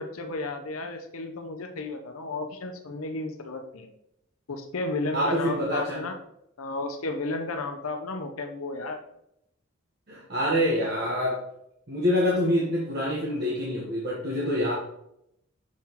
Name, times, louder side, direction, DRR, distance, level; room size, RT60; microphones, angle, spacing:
voice 1, 0.0-3.9 4.5-6.2 6.6-9.0, left 2 dB, 85° left, 5 dB, 0.8 m, -33 dB
voice 2, 5.1-6.1 10.1-11.4 11.9-14.7, equal, 50° right, -5 dB, 1.2 m, -26 dB
6.2 x 5.6 x 3.0 m, 0.77 s
head